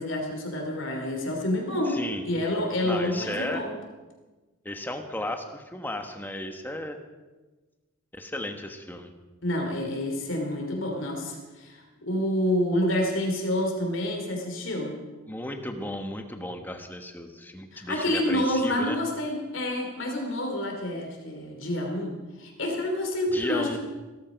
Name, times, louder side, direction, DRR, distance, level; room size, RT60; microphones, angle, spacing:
voice 1, 0.0-3.7 9.4-15.0 17.7-23.8, left 1 dB, 60° left, 1 dB, 3.1 m, -28 dB
voice 2, 1.9-2.2 2.8-3.7 4.6-7.0 8.1-9.1 15.3-19.0 23.3-23.8, left 1 dB, 10° left, 5 dB, 1.2 m, -34 dB
17.0 x 14.0 x 5.2 m, 1.2 s
head